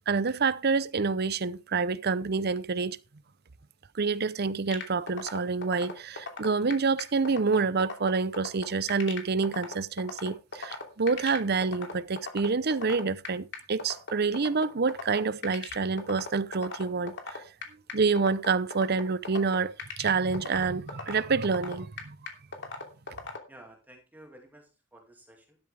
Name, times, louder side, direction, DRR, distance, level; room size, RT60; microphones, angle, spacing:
voice 1, 0.1-3.0 3.9-17.4 17.9-22.2, right 4 dB, 50° right, 0.7 m, -27 dB
sound 1, 4.7-23.4, left 4 dB, 65° left, 2.9 m, -37 dB
voice 2, 23.5-25.6, right 1 dB, 10° right, 2.4 m, -53 dB
13.0 x 12.5 x 3.4 m
head